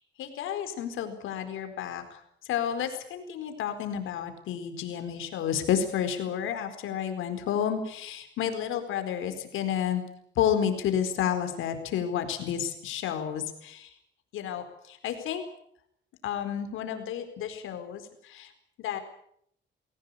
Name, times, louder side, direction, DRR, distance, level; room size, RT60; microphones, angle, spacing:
voice 1, 0.2-2.2 2.5-10.0 10.4-13.9 14.3-15.4 16.2-18.5 18.8-19.0, left 9 dB, 85° left, 8 dB, 4.5 m, -31 dB
24.0 x 17.0 x 9.9 m, 0.70 s
cardioid pair, 90°, 20 cm